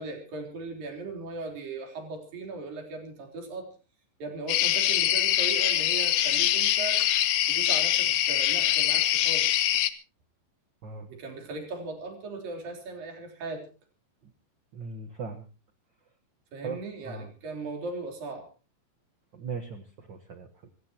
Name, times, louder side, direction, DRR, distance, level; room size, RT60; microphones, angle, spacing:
voice 1, 0.0-3.7 4.2-7.0 7.5-9.6 11.1-13.6 16.5-18.5, right 3 dB, 90° right, 3 dB, 5.5 m, -38 dB
sound 1, 4.5-9.9, left 13 dB, 70° left, 1.9 m, -24 dB
voice 2, 14.7-15.4 16.6-17.3 19.3-20.7, right 5 dB, 65° right, 8 dB, 1.1 m, -39 dB
26.5 x 15.5 x 2.9 m, 0.33 s
omnidirectional pair, 3.9 m